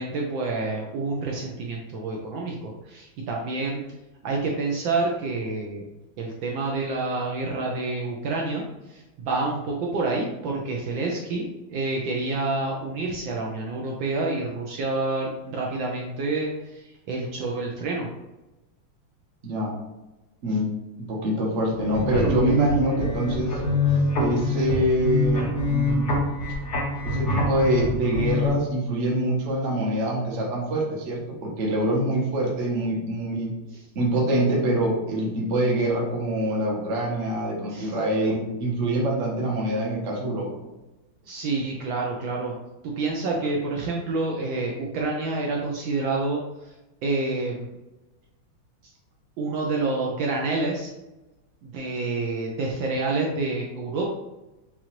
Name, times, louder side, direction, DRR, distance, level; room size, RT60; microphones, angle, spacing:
voice 1, 0.0-3.8 4.2-5.8 6.2-11.4 11.7-18.1 33.7-33.8 37.7-37.9 41.2-42.5 42.8-46.7 47.0-47.7 49.4-50.9 51.6-54.1, right 3 dB, 75° right, -1 dB, 1.2 m, -28 dB
voice 2, 19.4-19.8 20.4-20.7 21.0-23.6 24.2-26.1 27.0-33.5 33.9-40.5, right 1 dB, 45° right, -2 dB, 0.9 m, -25 dB
sound 1, 21.8-28.5, left 2 dB, 90° left, 2.4 m, -25 dB
5.8 x 2.5 x 3.0 m, 1.0 s
omnidirectional pair, 2.4 m